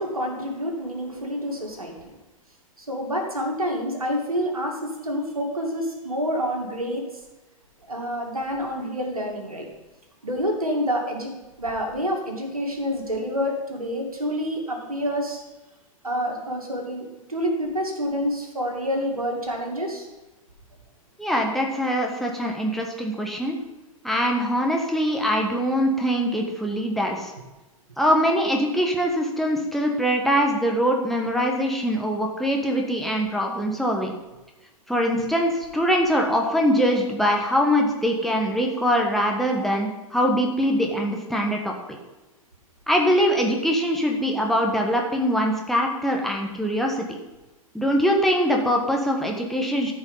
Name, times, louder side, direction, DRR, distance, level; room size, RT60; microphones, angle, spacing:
voice 1, 0.0-2.1 2.8-7.0 7.9-9.7 10.2-11.3 11.6-15.4 16.0-20.1, equal, 85° right, 1 dB, 2.4 m, -28 dB
voice 2, 21.2-23.6 24.0-27.3 28.0-34.1 34.9-41.7 42.9-47.2 47.7-49.9, equal, ahead, -1 dB, 1.3 m, -23 dB
13.5 x 5.2 x 5.5 m, 1.1 s
figure-of-eight pair, 105°, 18 cm